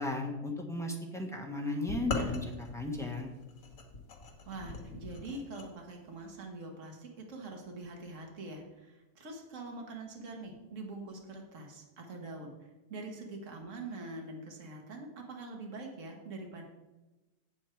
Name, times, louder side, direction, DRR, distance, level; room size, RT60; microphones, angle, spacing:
voice 1, 0.0-3.3, left 2 dB, ahead, 0 dB, 1.2 m, -35 dB
sound 1, 1.9-5.7, left 3 dB, 60° left, 1.6 m, -40 dB
voice 2, 4.5-16.6, right 2 dB, 50° right, 1 dB, 1.8 m, -44 dB
8.3 x 8.0 x 4.6 m, 1.1 s
omnidirectional pair, 1.7 m